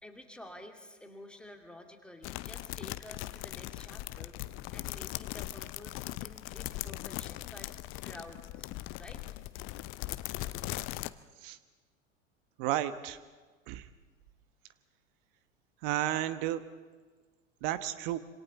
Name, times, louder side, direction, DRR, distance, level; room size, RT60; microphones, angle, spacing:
voice 1, 0.0-7.7 8.0-8.7 9.0-9.2, left 1 dB, 5° left, 2 dB, 2.5 m, -51 dB
sound 1, 2.2-11.1, left 17 dB, 35° left, 0.7 m, -40 dB
voice 2, 12.6-13.2 13.7-13.9 15.8-16.6 17.6-18.2, right 13 dB, 45° right, 12 dB, 1.2 m, -32 dB
27.0 x 26.5 x 4.1 m, 1.4 s
figure-of-eight pair, 85°, 39 cm